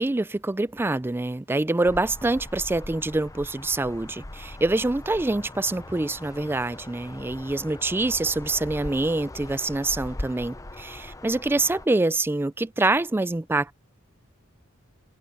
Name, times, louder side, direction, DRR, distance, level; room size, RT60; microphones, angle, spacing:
voice 1, 0.0-13.7, right 2 dB, 10° right, 0.3 m, -25 dB
sound 1, 1.8-11.9, left 1 dB, 15° left, 0.7 m, -40 dB
head